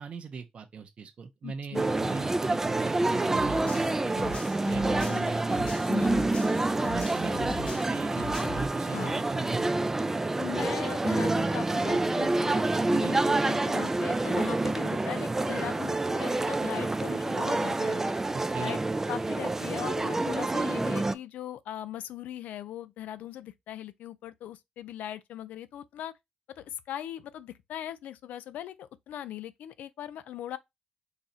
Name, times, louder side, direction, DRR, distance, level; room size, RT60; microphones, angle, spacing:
voice 1, 0.0-4.2 4.7-6.3 6.8-9.7 12.9-13.2 18.3-18.8, right 5 dB, 50° right, 0.6 m, -40 dB
voice 2, 1.4-2.1 5.0-5.3 5.9-6.5 8.9-9.2 10.4-18.0 18.6-18.8 19.1-26.1 26.5-30.6, left 11 dB, 85° left, 0.3 m, -40 dB
sound 1, 1.7-21.1, right 2 dB, 15° right, 0.3 m, -28 dB
sound 2, 3.3-6.6 6.8-8.7, left 3 dB, 45° left, 0.7 m, -39 dB
4.0 x 2.4 x 4.1 m
cardioid pair, 110°, 3 cm